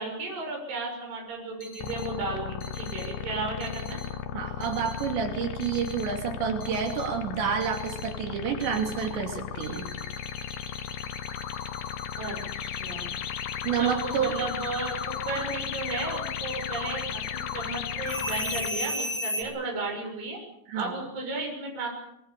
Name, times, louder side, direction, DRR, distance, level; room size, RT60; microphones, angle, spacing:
voice 1, 0.0-4.0 12.2-13.1 13.8-20.4 20.8-21.9, right 3 dB, 50° right, 1 dB, 8.2 m, -34 dB
sound 1, 1.6-2.1 2.6-3.1 3.6-4.1 4.6-5.1 5.6-6.1 6.6-7.1 7.6-8.1 8.6-9.1 9.6-19.4, left 1 dB, 35° left, 5.4 m, -38 dB
sound 2, 1.8-18.7, left 10 dB, 90° left, 3.7 m, -35 dB
voice 2, 4.3-9.9 13.6-14.4 20.7-21.0, right 7 dB, 75° right, 3 dB, 4.9 m, -29 dB
25.5 x 22.5 x 6.8 m, 0.82 s
omnidirectional pair, 5.1 m